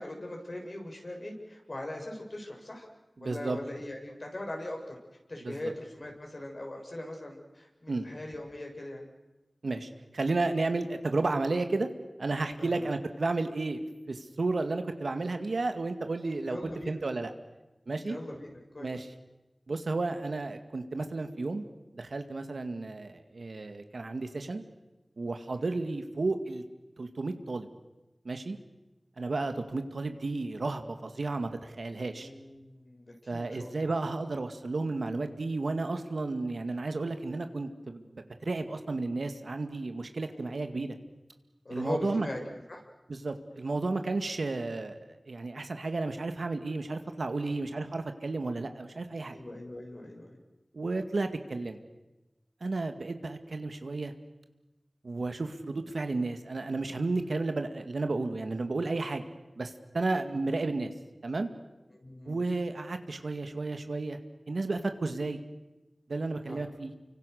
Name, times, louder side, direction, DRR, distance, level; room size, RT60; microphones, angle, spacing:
voice 1, 0.0-2.8 3.2-4.9 5.3-9.1 12.6-12.9 16.5-17.0 17.9-18.9 22.4-22.6 25.4-25.7 32.2-33.8 40.3-40.6 41.6-42.4 42.7-42.8 47.4-47.6 49.3-50.4 61.9-62.4 66.5-66.7, left 1 dB, 55° left, 1 dB, 6.5 m, -41 dB
voice 2, 3.2-3.6 5.4-5.7 7.9-8.1 9.6-11.9 12.2-13.8 14.1-16.6 16.9-17.3 17.9-18.2 18.8-19.1 19.7-21.6 21.9-24.6 25.2-26.6 27.0-27.7 28.2-28.6 29.2-32.3 33.3-41.0 41.7-42.3 43.1-49.4 50.7-51.8 52.6-54.1 55.0-59.2 59.6-60.9 61.2-61.5 62.3-64.2 64.5-65.4 66.1-66.9, right 3 dB, 85° right, 7 dB, 2.1 m, -32 dB
30.0 x 24.5 x 6.6 m, 1.0 s
wide cardioid pair, 50°, 0 cm